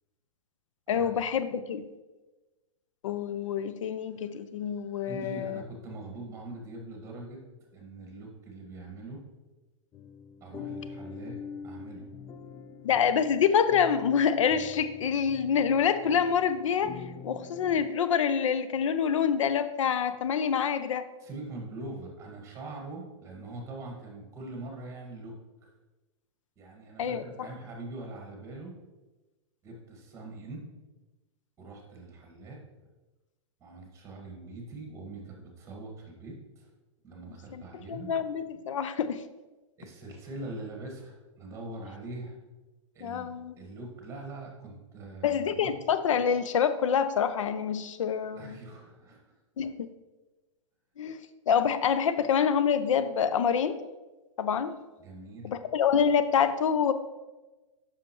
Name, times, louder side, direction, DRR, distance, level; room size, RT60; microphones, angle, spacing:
voice 1, 0.9-1.9 3.0-5.6 12.8-16.9 17.2-21.1 27.0-27.5 37.5-37.6 37.9-39.2 43.0-43.5 45.2-48.6 49.6-49.7 51.0-51.2 51.5-53.8 54.4-54.7 55.4-56.9, left 7 dB, 75° left, 11 dB, 0.5 m, -26 dB
voice 2, 5.1-7.4 7.7-9.2 10.4-11.4 11.6-12.1 21.2-25.7 26.6-28.7 29.6-30.7 31.6-32.6 33.6-36.7 37.0-38.1 39.8-42.4 42.9-43.3 43.6-45.7 48.3-49.4 55.0-55.6, right 2 dB, 20° right, 1 dB, 1.7 m, -43 dB
sound 1, 9.9-17.9, left 6 dB, 20° left, 0.4 m, -44 dB
7.5 x 5.9 x 3.0 m, 1.1 s
hypercardioid pair, 125°, 16 cm